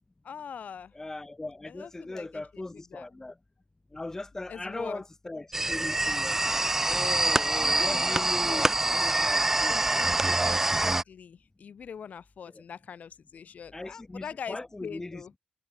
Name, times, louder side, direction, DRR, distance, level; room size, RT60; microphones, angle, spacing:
voice 1, 0.2-0.9 1.6-3.1 4.5-5.0 7.6-9.1 9.7-10.1 10.4-15.3, left 7 dB, 70° left, 4.0 m, -42 dB
voice 2, 0.9-3.4 3.9-6.5 6.9-10.2 12.5-12.6 13.7-15.4, left 2 dB, 15° left, 3.5 m, -39 dB
sound 1, 5.5-11.0, right 2 dB, 15° right, 0.3 m, -25 dB
wide cardioid pair, 160°, 3 cm